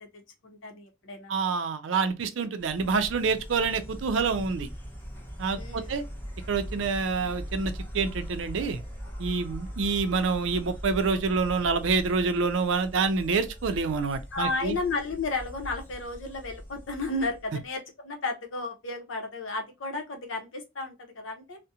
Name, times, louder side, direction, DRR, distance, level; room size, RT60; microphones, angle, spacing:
voice 1, 0.0-1.3 5.5-5.9 14.3-21.6, left 3 dB, 80° left, 0.7 m, -33 dB
voice 2, 1.3-4.7 5.4-6.0 6.5-8.8 9.2-14.8, right 4 dB, 75° right, 0.4 m, -27 dB
Insect, 2.6-17.7, equal, 10° left, 0.6 m, -40 dB
2.7 x 2.1 x 2.3 m
head